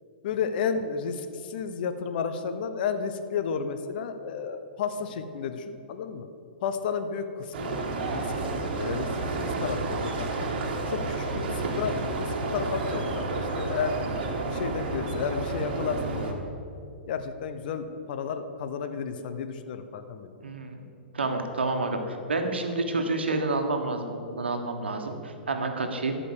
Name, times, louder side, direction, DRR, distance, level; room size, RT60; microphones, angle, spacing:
voice 1, 0.2-6.3 6.6-8.3 8.7-9.1 9.4-10.5 10.9-14.0 14.5-16.4 17.1-20.3, left 6 dB, 55° left, 9 dB, 0.8 m, -32 dB
sound 1, 7.5-16.3, right 3 dB, 60° right, 1.6 m, -30 dB
voice 2, 20.4-20.8 21.1-26.2, right 2 dB, 85° right, 5 dB, 1.3 m, -29 dB
13.0 x 5.1 x 6.7 m, 2.6 s
hypercardioid pair, 120°, 6 cm